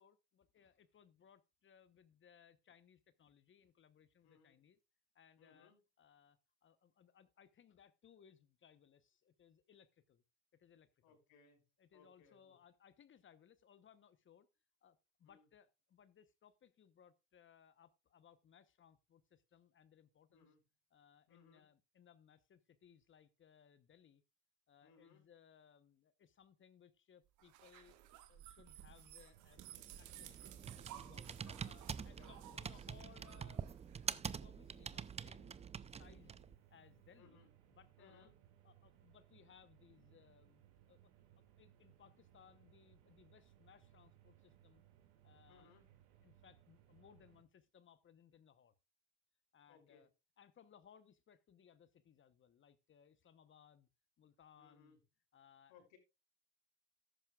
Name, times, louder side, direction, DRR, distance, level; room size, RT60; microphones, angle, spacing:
voice 1, 0.0-4.8 5.1-10.2 10.5-11.2 11.8-14.5 14.8-20.5 20.9-24.2 24.7-27.9 28.3-29.6 30.0-30.6 31.0-31.3 31.6-36.4 36.7-37.4 37.7-38.3 38.6-40.6 40.9-44.8 45.2-45.7 46.2-48.7 49.5-50.1 50.4-53.9 54.2-55.0 55.3-55.8, left 8 dB, 35° left, 1.0 m, -66 dB
voice 2, 4.2-4.6 5.4-5.8 11.0-11.7 11.9-12.6 15.2-15.5 20.3-20.7 21.3-21.7 24.8-25.2 31.3-32.5 37.2-37.5 38.0-38.4 45.5-45.9 49.7-50.1 54.5-55.0 55.7-56.0, left 6 dB, 75° left, 5.8 m, -67 dB
sound 1, 27.4-34.3, right 12 dB, 60° right, 1.5 m, -57 dB
sound 2, 29.3-47.4, right 11 dB, 75° right, 2.4 m, -67 dB
Computer keyboard, 29.6-36.6, right 6 dB, 20° right, 0.5 m, -46 dB
13.5 x 11.0 x 2.4 m
hypercardioid pair, 75°, 34 cm